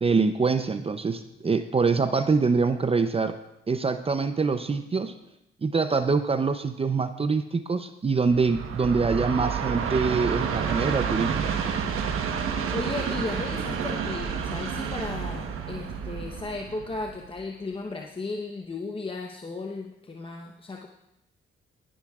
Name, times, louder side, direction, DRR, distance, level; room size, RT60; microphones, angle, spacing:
voice 1, 0.0-3.4 3.7-5.1 5.6-11.5, right 4 dB, 30° right, 9 dB, 0.6 m, -25 dB
Train, 8.3-17.5, right 7 dB, 85° right, 1.2 m, -30 dB
voice 2, 12.7-20.9, left 3 dB, 25° left, 1 dB, 0.9 m, -35 dB
19.0 x 10.0 x 2.4 m, 0.85 s
cardioid pair, 75°, 21 cm